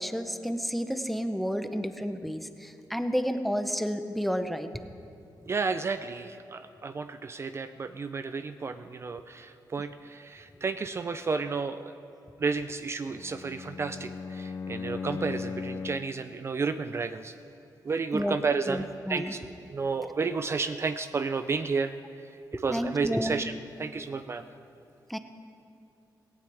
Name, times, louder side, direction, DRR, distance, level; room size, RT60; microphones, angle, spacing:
voice 1, 0.0-4.7 18.1-18.3 18.7-19.3 22.5-23.4 25.1-25.2, equal, ahead, 8 dB, 0.7 m, -31 dB
voice 2, 5.5-11.9 12.4-17.3 17.8-19.4 19.7-21.9 22.5-23.5 23.8-24.4, right 4 dB, 35° right, 10 dB, 0.4 m, -32 dB
Bowed string instrument, 13.0-16.2, left 5 dB, 40° left, 0.5 m, -37 dB
18.0 x 17.5 x 3.5 m, 2.6 s
wide cardioid pair, 120°, 8 cm